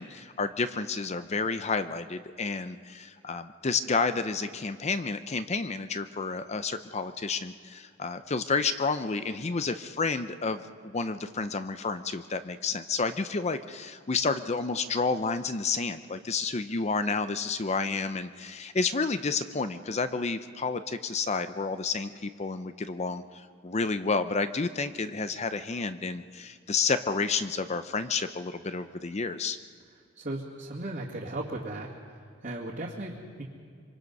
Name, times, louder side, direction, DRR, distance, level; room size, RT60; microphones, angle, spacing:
voice 1, 0.0-29.6, left 4 dB, 30° left, 11 dB, 0.6 m, -30 dB
voice 2, 30.2-31.9 32.4-33.4, right 1 dB, 45° right, -5 dB, 2.2 m, -36 dB
25.5 x 24.5 x 5.4 m, 2.2 s
head